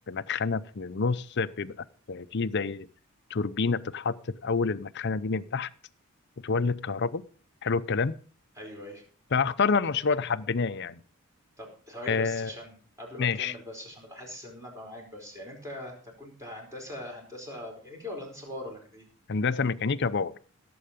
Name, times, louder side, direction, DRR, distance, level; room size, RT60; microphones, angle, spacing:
voice 1, 0.1-2.9 3.3-5.7 6.4-7.2 7.6-8.1 9.3-11.0 12.1-12.5 13.2-13.5 19.3-20.3, left 4 dB, 50° left, 13 dB, 0.6 m, -28 dB
voice 2, 8.5-9.0 11.6-12.7 13.0-19.1, left 1 dB, 15° right, 0 dB, 4.6 m, -41 dB
17.0 x 7.8 x 5.1 m, 0.40 s
head